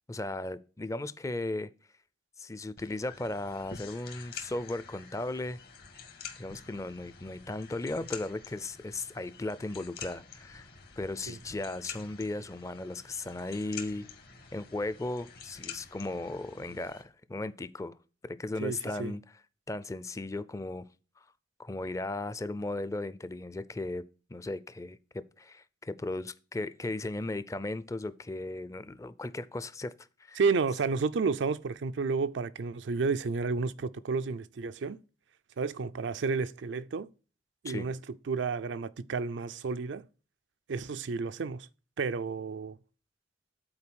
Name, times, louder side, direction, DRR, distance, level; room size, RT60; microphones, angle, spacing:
voice 1, 0.1-1.7 2.4-5.6 6.4-10.7 11.0-14.1 14.5-18.0 18.2-19.2 19.7-20.8 21.2-21.3 21.6-24.0 24.3-29.9 30.2-30.4 37.6-37.9, left 2 dB, 15° left, 0.4 m, -36 dB
sound 1, 2.8-17.0, left 7 dB, 60° left, 1.5 m, -48 dB
voice 2, 18.6-19.1 30.4-35.0 35.6-37.1 37.6-38.0 38.3-40.1 40.7-41.7 42.0-42.8, right 4 dB, 85° right, 0.5 m, -31 dB
8.6 x 4.4 x 6.2 m
head